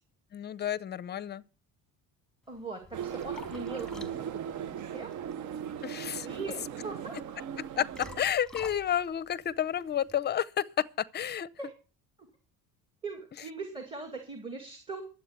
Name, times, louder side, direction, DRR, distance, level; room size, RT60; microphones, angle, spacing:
voice 1, 0.3-1.4 5.8-6.3 7.8-10.8 11.1-11.5, left 10 dB, 30° left, 0.6 m, -30 dB
Liquid, 2.4-10.2, left 4 dB, ahead, 1.5 m, -51 dB
voice 2, 2.5-5.1 6.2-7.2 11.6-11.7 13.0-15.0, right 3 dB, 15° right, 2.2 m, -40 dB
sound 1, 2.9-8.2, right 9 dB, 55° right, 0.9 m, -38 dB
11.5 x 8.1 x 8.0 m
cardioid pair, 145°, 36 cm